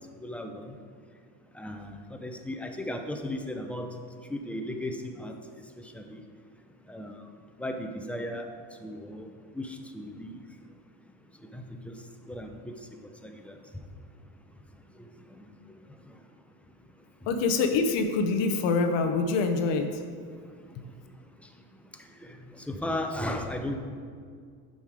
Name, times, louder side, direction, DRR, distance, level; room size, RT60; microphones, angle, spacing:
voice 1, 0.2-0.7 1.5-1.9 2.2-3.9 4.3-5.3 5.9-6.2 6.9-7.2 7.6-8.5 8.8-9.3 9.6-10.3 11.5-11.9 12.3-12.7 13.2-13.5 15.4-15.5 22.6-23.8, left 1 dB, 5° left, 4 dB, 0.7 m, -35 dB
voice 2, 17.3-20.0, left 4 dB, 65° left, 6 dB, 0.9 m, -25 dB
7.2 x 5.4 x 4.9 m, 2.1 s
supercardioid pair, 80°, 47 cm